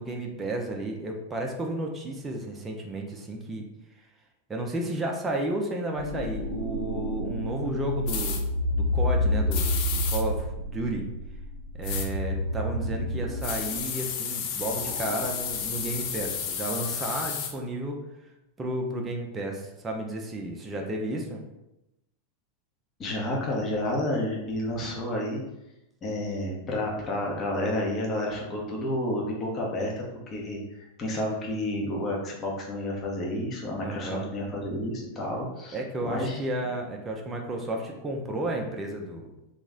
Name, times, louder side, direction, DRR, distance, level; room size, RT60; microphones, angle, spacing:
voice 1, 0.0-3.6 4.5-8.4 8.8-11.0 11.8-18.0 18.6-21.4 33.8-34.3 35.7-39.3, right 1 dB, 15° right, 1 dB, 0.5 m, -32 dB
sound 1, 5.9-13.8 14.7-16.4, left 1 dB, 85° right, 0.7 m, -30 dB
sound 2, 8.1-8.4 9.5-10.2 11.8-12.1 13.4-17.5, left 7 dB, 45° left, 0.4 m, -32 dB
voice 2, 23.0-25.4 26.0-36.4, left 1 dB, 25° left, -2 dB, 0.9 m, -30 dB
3.0 x 2.4 x 3.6 m, 0.90 s
figure-of-eight pair, 90°, 0 cm